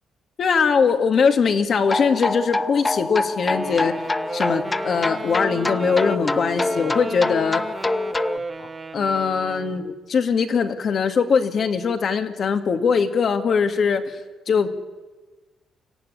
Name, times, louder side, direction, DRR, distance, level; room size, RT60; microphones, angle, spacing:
voice 1, 0.4-3.9 4.3-7.6 8.6-14.2 14.5-14.8, left 5 dB, 55° left, 6 dB, 2.1 m, -21 dB
sound 1, 1.8-8.4, left 2 dB, 20° left, 0.8 m, -26 dB
Wind instrument woodwind instrument, 3.4-9.9, right 3 dB, 30° right, 1.7 m, -34 dB
25.5 x 15.0 x 9.9 m, 1.3 s
cardioid pair, 90°, 0 cm